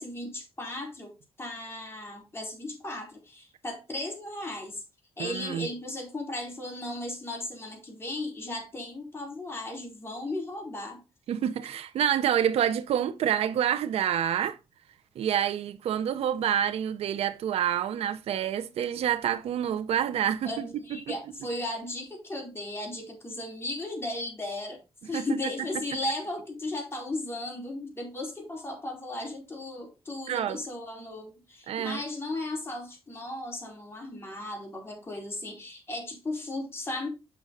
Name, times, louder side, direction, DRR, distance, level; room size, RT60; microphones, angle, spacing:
voice 1, 0.0-4.8 5.2-11.0 20.4-24.8 25.1-37.1, left 2 dB, 25° left, 4.5 m, -36 dB
voice 2, 5.2-5.7 11.3-14.6 15.2-20.6 21.1-21.2 25.1-25.3 30.3-30.6 31.7-32.0, right 10 dB, 85° right, 0.7 m, -27 dB
7.9 x 6.1 x 4.0 m
cardioid pair, 85°, 10 cm